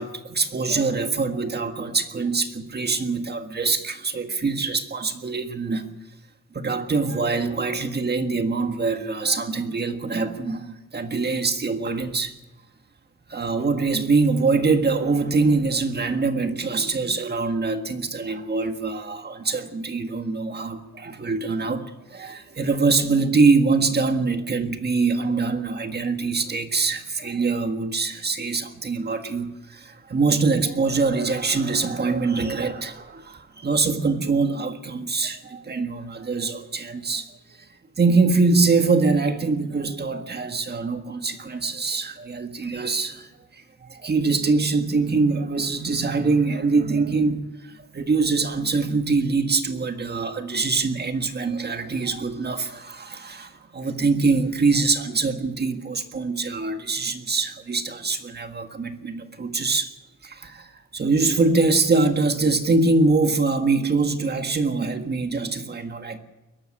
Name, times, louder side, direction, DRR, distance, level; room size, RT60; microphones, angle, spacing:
voice 1, 0.0-5.8 6.5-12.3 13.3-21.8 22.1-37.3 38.0-59.9 60.2-66.2, right 4 dB, 30° right, 7 dB, 1.7 m, -24 dB
22.0 x 12.5 x 10.0 m, 1.0 s
wide cardioid pair, 140°, 33 cm